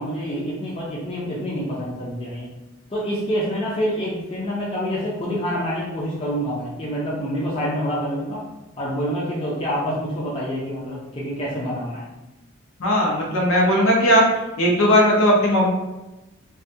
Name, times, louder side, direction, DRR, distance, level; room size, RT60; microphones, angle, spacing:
voice 1, 0.0-2.5 2.9-8.4 8.8-12.1, equal, 25° left, -6 dB, 0.5 m, -27 dB
voice 2, 12.8-14.2 14.6-15.7, equal, 70° left, -2 dB, 0.7 m, -17 dB
2.3 x 2.2 x 2.7 m, 1.0 s
head